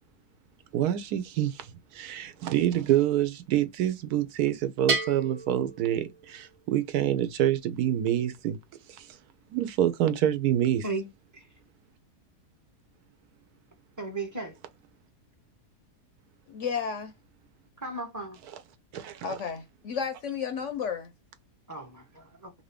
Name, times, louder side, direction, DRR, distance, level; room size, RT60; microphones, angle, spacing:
voice 1, 0.7-8.6 8.9-9.2 9.5-10.8 18.9-19.2, right 11 dB, 80° right, 1.1 m, -27 dB
Bell, 4.9-6.6, right 4 dB, 55° right, 0.9 m, -32 dB
voice 2, 14.0-14.6 17.8-18.4 21.7-22.5, right 3 dB, 15° right, 0.7 m, -35 dB
voice 3, 16.5-17.1 19.2-21.1, left 6 dB, 65° left, 0.8 m, -32 dB
2.9 x 2.6 x 3.3 m
omnidirectional pair, 1.7 m